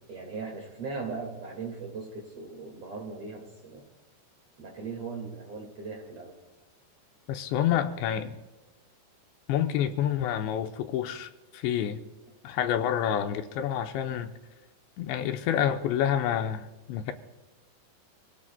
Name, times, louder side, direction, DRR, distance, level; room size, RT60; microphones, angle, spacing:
voice 1, 0.1-3.8 4.6-6.3, right 4 dB, 45° right, 1 dB, 2.5 m, -38 dB
voice 2, 7.3-8.4 9.5-12.0 12.4-14.3 15.0-17.1, left 10 dB, 90° left, 6 dB, 3.2 m, -28 dB
28.0 x 17.0 x 2.3 m, 1.1 s
omnidirectional pair, 5.0 m